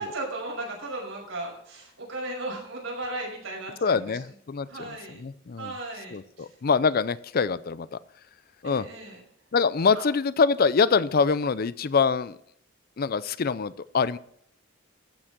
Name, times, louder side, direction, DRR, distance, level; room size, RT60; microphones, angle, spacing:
voice 1, 0.0-4.2 4.7-5.2 5.6-6.5 8.6-9.2 9.9-10.0, right 2 dB, 85° right, -2 dB, 5.8 m, -36 dB
voice 2, 3.8-5.7 6.1-8.0 8.6-8.9 9.5-12.4 13.0-14.2, left 5 dB, 50° left, 17 dB, 0.5 m, -25 dB
14.5 x 6.2 x 6.0 m, 0.69 s
head